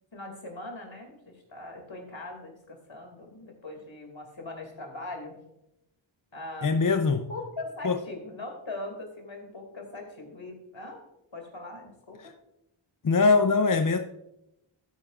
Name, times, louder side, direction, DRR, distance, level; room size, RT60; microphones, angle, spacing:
voice 1, 0.1-5.4 6.3-6.9 7.3-11.0 11.3-12.3, left 2 dB, 65° left, 2.6 m, -41 dB
voice 2, 6.6-7.3 7.8-8.0 12.2-12.3 13.0-14.0, left 4 dB, 40° left, 0.6 m, -22 dB
13.0 x 9.1 x 2.5 m
wide cardioid pair, 45°, 49 cm